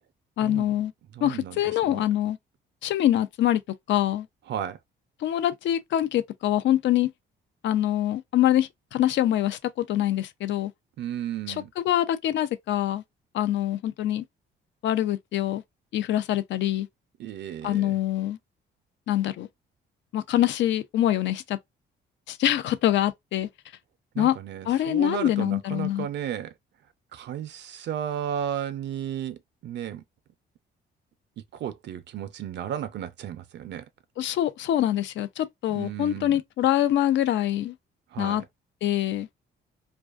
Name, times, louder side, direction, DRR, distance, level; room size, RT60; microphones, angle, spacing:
voice 1, 0.4-0.9 1.2-2.4 2.8-3.6 3.9-4.3 5.2-7.1 7.6-10.7 11.9-13.0 13.3-14.2 14.8-15.6 15.9-16.9 17.6-18.4 19.1-19.5 20.1-21.6 22.3-23.5 24.2-24.4 24.7-26.1 34.2-37.7 38.2-38.4 38.8-39.3, left 12 dB, 70° left, 0.4 m, -24 dB
voice 2, 1.1-2.0 4.5-4.8 11.0-11.7 17.2-18.0 24.1-26.5 27.1-30.0 31.5-33.9 35.7-36.4 38.1-38.4, right 10 dB, 60° right, 0.4 m, -34 dB
2.4 x 2.3 x 2.3 m
cardioid pair, 90°, 20 cm